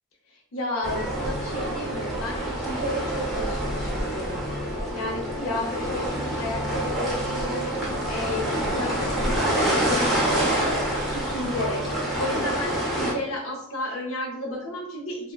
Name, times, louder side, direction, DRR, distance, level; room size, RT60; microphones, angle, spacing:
voice 1, 0.5-4.4 4.9-11.8 12.2-15.3, left 1 dB, 85° left, -1 dB, 0.6 m, -32 dB
sound 1, 0.8-13.1, right 1 dB, ahead, 0.6 m, -27 dB
3.5 x 2.1 x 2.2 m, 0.70 s
head